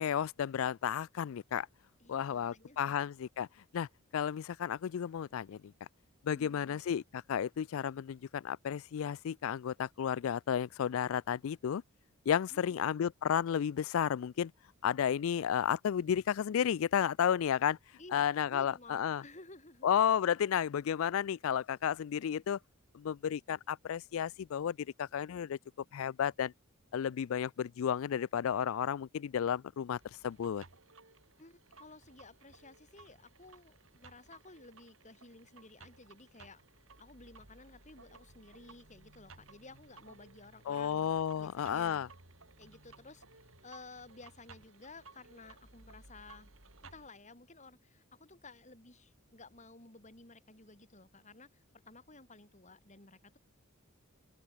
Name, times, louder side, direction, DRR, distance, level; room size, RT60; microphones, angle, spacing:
voice 1, 0.0-1.7 2.1-3.5 3.7-5.7 6.2-11.8 12.3-14.5 14.8-17.8 18.1-19.2 19.8-22.6 22.9-25.6 25.9-26.5 26.9-30.6 40.7-42.1, left 8 dB, 70° left, 0.3 m, -32 dB
voice 2, 2.0-3.0 12.5-13.0 18.0-19.9 31.4-36.6 37.0-41.1 41.4-42.1 42.6-43.2 43.6-46.5 46.8-53.4, left 3 dB, 35° left, 4.4 m, -54 dB
sound 1, 29.9-47.1, right 3 dB, 65° right, 4.8 m, -58 dB
open air
head